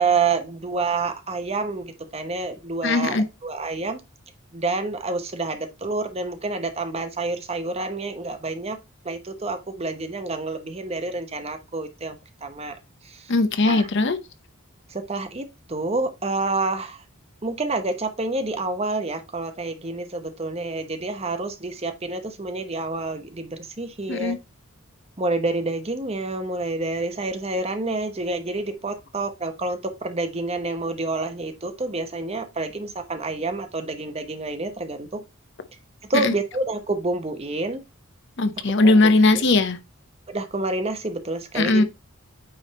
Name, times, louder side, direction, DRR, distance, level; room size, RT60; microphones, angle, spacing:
voice 1, 0.0-3.2 3.4-4.0 4.5-8.8 9.0-13.3 13.7-13.9 14.9-17.0 17.4-24.3 25.2-35.2 36.1-37.8 38.8-39.4 40.3-41.8, right 3 dB, 30° right, 0.9 m, -28 dB
voice 2, 2.8-3.2 13.3-14.2 24.1-24.4 36.1-36.3 38.4-39.8 41.5-41.8, left 2 dB, 55° left, 0.8 m, -19 dB
8.9 x 3.6 x 4.1 m
head